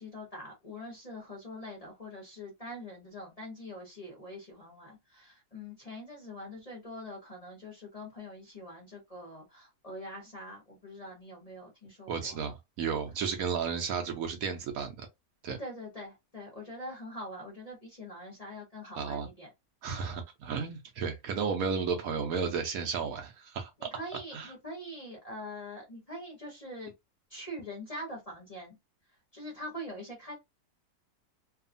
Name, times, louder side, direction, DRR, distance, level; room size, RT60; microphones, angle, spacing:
voice 1, 0.0-12.4 15.6-19.5 23.8-26.9 27.3-28.8 29.3-30.3, left 1 dB, 30° left, 0.8 m, -44 dB
voice 2, 12.1-15.1 15.4-15.6 19.0-19.3 19.8-23.7 24.3-24.5, right 6 dB, 70° right, 0.9 m, -33 dB
2.7 x 2.4 x 2.5 m
omnidirectional pair, 1.7 m